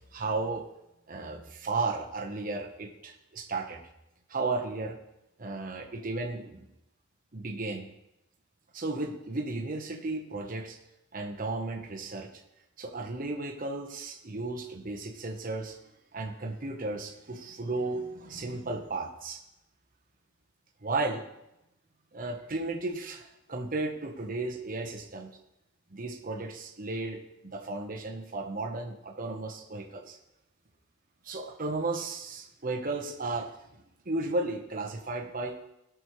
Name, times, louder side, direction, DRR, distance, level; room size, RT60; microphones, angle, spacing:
voice 1, 0.1-0.7 1.1-3.8 4.3-5.0 5.4-6.7 7.3-7.9 8.7-10.8 11.1-12.3 12.8-15.8 16.1-19.4 20.8-21.2 22.1-25.3 25.9-30.2 31.2-35.6, right 3 dB, 45° right, 2 dB, 1.0 m, -34 dB
17.5 x 6.1 x 3.2 m, 0.88 s
head